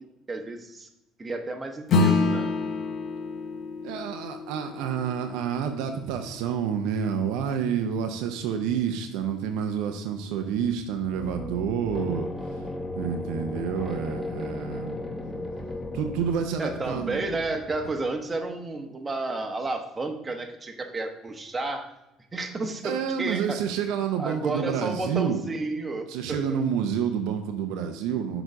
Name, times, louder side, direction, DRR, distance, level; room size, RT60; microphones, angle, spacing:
voice 1, 0.3-0.9 1.2-2.5 16.6-21.9 22.3-23.6 24.2-26.6, right 2 dB, 25° right, 5 dB, 1.0 m, -31 dB
Acoustic guitar / Strum, 1.9-6.7, left 3 dB, 55° left, 0.8 m, -27 dB
voice 2, 3.8-12.6 13.0-15.0 15.9-17.2 22.8-25.4 26.1-28.4, right 7 dB, 75° right, 5 dB, 0.6 m, -29 dB
sound 1, 10.9-18.2, left 2 dB, 15° left, 0.8 m, -36 dB
6.3 x 3.9 x 4.8 m, 0.94 s
hypercardioid pair, 70°, 0 cm